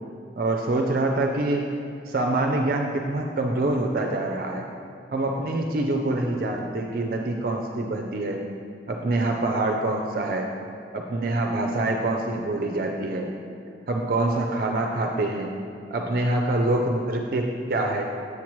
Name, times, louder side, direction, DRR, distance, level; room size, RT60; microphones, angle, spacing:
voice 1, 0.4-1.7 2.1-4.6 5.1-8.4 8.9-10.5 10.9-13.3 13.9-15.5 15.9-18.1, right 2 dB, 55° right, 2 dB, 0.4 m, -25 dB
7.7 x 7.3 x 3.1 m, 2.4 s
head